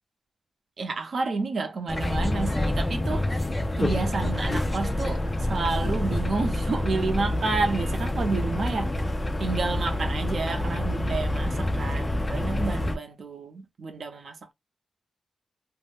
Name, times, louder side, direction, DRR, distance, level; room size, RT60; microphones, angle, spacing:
voice 1, 0.8-3.3 3.8-8.9 9.4-14.5, right 3 dB, 65° right, 0.6 m, -30 dB
sound 1, 1.9-13.0, left 1 dB, 25° left, 0.5 m, -27 dB
2.4 x 2.1 x 3.4 m
wide cardioid pair, 160°, 0 cm